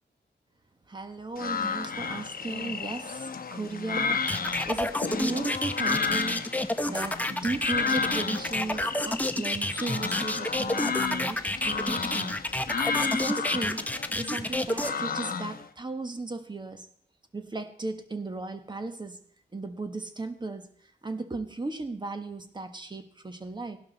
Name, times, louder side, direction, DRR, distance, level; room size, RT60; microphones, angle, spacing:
voice 1, 0.9-12.4 13.0-13.8 14.1-16.9 17.3-19.2 19.5-20.7 21.0-23.8, right 3 dB, 25° right, 8 dB, 1.4 m, -36 dB
sound 1, 1.4-15.7, left 5 dB, 50° left, 1.0 m, -32 dB
sound 2, 4.3-14.9, left 1 dB, 10° left, 0.8 m, -29 dB
16.5 x 12.0 x 4.1 m, 0.63 s
wide cardioid pair, 110°, 19 cm